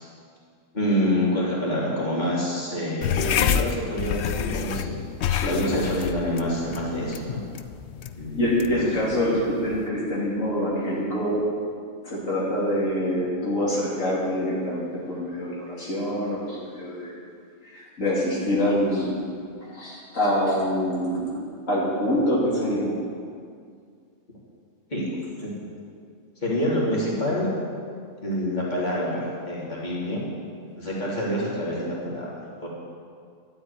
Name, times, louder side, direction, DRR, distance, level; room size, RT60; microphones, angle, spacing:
voice 1, 0.7-5.0 5.4-7.4 8.2-8.5 8.8-8.9 24.9-25.1 25.4-25.5 26.4-27.5 28.2-30.2 30.8-32.3 32.6-32.7, equal, 35° left, -6 dB, 3.6 m, -27 dB
sound 1, 3.0-9.9, left 8 dB, 65° left, 0.9 m, -29 dB
voice 2, 5.3-6.1 8.4-11.5 12.0-17.1 17.6-19.2 19.6-23.0, equal, 80° left, -6 dB, 3.4 m, -25 dB
12.5 x 8.8 x 9.6 m, 2.2 s
omnidirectional pair, 1.3 m